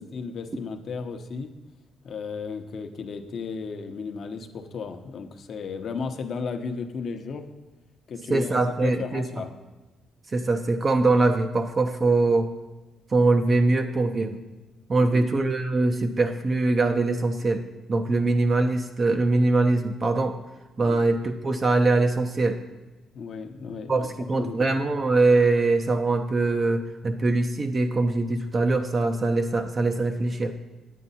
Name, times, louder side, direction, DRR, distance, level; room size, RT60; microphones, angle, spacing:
voice 1, 0.0-1.5 2.0-7.5 8.1-9.5 15.0-15.3 20.8-21.0 23.1-24.1 24.4-24.7, left 5 dB, 55° left, 7 dB, 0.8 m, -34 dB
voice 2, 8.3-9.3 10.3-12.5 13.1-14.4 14.9-17.6 17.9-20.4 20.8-22.6 23.9-30.5, right 3 dB, 35° right, 5 dB, 0.6 m, -22 dB
9.2 x 8.9 x 4.1 m, 1.1 s
cardioid pair, 105°, 0 cm